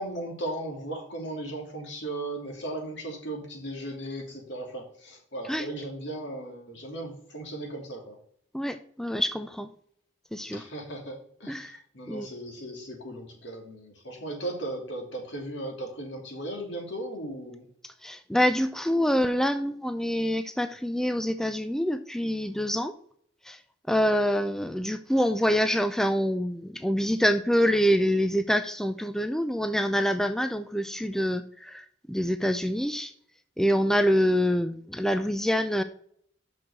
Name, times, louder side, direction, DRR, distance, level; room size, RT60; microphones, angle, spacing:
voice 1, 0.0-8.2 10.5-17.6 24.1-24.2, right 1 dB, 65° left, 1 dB, 2.9 m, -37 dB
voice 2, 8.5-9.7 10.3-10.6 11.5-11.7 12.1-12.3 18.0-22.9 23.5-23.6 23.9-33.1 33.6-35.8, equal, 5° left, 9 dB, 0.4 m, -26 dB
6.3 x 6.1 x 6.5 m, 0.63 s
head